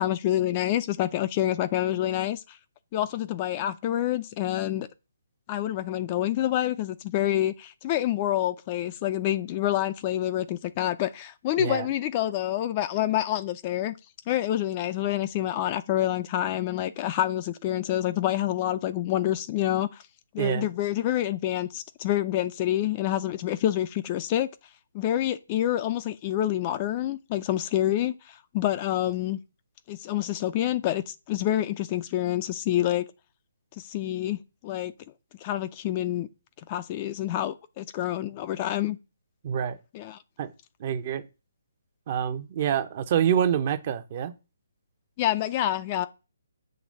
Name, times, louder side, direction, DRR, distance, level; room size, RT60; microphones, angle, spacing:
voice 1, 0.0-2.6 2.9-4.9 5.5-13.9 14.3-19.9 20.3-24.5 24.9-29.4 29.9-33.1 33.8-34.4 34.6-34.9 35.4-36.3 36.7-39.0 39.9-40.2 45.2-46.1, left 13 dB, 30° left, 0.5 m, -27 dB
voice 2, 39.4-39.8 40.4-40.5 40.8-41.2 42.1-44.3, right 9 dB, 40° right, 0.8 m, -26 dB
7.9 x 3.3 x 6.3 m
hypercardioid pair, 150°, 0 cm